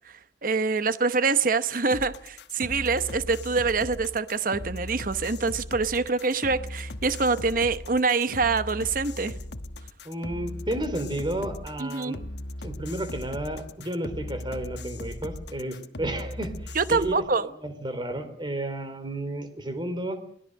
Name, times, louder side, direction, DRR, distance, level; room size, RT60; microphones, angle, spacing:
voice 1, 0.4-9.3 11.8-12.1 16.7-17.4, right 4 dB, 50° right, 1.0 m, -25 dB
sound 1, 1.9-17.1, left 1 dB, 70° left, 1.2 m, -38 dB
voice 2, 10.0-12.2 12.6-20.2, right 1 dB, 25° right, 3.4 m, -32 dB
24.0 x 18.5 x 6.5 m
head